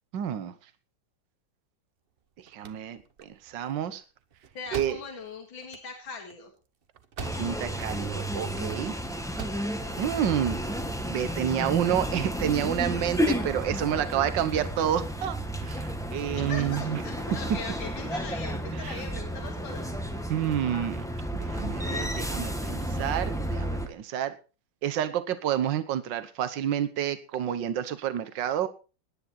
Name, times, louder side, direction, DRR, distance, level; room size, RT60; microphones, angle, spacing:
voice 1, 0.1-0.5 2.5-4.0 4.7-5.0 7.3-8.9 10.0-10.6 11.1-15.4 15.6-17.0 18.7-19.0 20.3-21.0 21.4-24.4 24.8-28.7, right 10 dB, 70° right, 13 dB, 1.7 m, -29 dB
sound 1, 2.2-7.8 8.0-8.8 9.2-9.7, right 7 dB, 45° right, 0.8 m, -43 dB
voice 2, 4.5-6.5 16.5-20.1, left 4 dB, 80° left, 2 dB, 3.0 m, -40 dB
sound 2, 7.2-23.9, equal, ahead, 1.1 m, -32 dB
18.5 x 10.0 x 4.2 m, 0.34 s
omnidirectional pair, 2.1 m